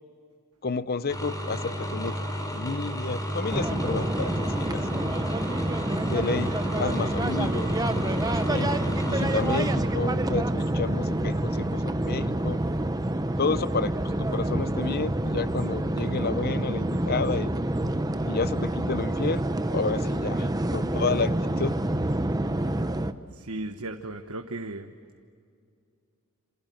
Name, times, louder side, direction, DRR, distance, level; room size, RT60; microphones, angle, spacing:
voice 1, 0.6-5.2 6.1-6.5 6.8-8.1 8.5-12.6 13.4-17.5 18.2-19.4 19.7-21.8, left 4 dB, 45° left, 15 dB, 0.7 m, -31 dB
sound 1, 1.1-9.7, equal, 15° left, 4.8 m, -33 dB
sound 2, 3.5-23.1, right 1 dB, 15° right, 0.9 m, -27 dB
voice 2, 23.3-24.9, right 2 dB, 75° right, 5 dB, 1.3 m, -36 dB
28.0 x 27.5 x 7.8 m, 2.3 s
head